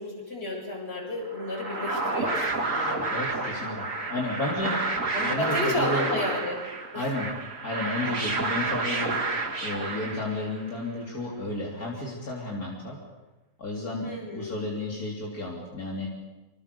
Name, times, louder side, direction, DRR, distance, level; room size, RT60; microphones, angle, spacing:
voice 1, 0.0-3.1 5.1-7.1 14.0-14.7, left 1 dB, 40° left, -1 dB, 8.0 m, -32 dB
sound 1, 1.3-10.7, right 3 dB, 60° right, 3.1 m, -30 dB
voice 2, 3.1-4.8 5.2-6.1 6.9-7.3 7.6-13.0 13.6-16.1, left 1 dB, 75° left, -2 dB, 4.0 m, -32 dB
26.5 x 26.0 x 7.0 m, 1.1 s
omnidirectional pair, 1.6 m